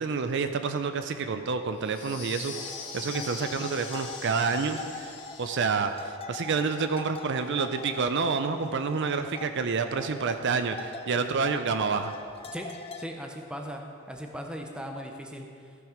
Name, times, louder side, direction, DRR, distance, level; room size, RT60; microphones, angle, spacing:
voice 1, 0.0-12.1, right 5 dB, 55° right, 8 dB, 0.5 m, -29 dB
sound 1, 1.8-5.8, left 5 dB, 55° left, 1.7 m, -41 dB
sound 2, 2.5-13.1, left 4 dB, 25° left, 0.5 m, -43 dB
voice 2, 13.0-13.8 14.1-15.8, equal, 5° right, 3 dB, 0.7 m, -39 dB
14.0 x 6.1 x 5.1 m, 2.3 s
head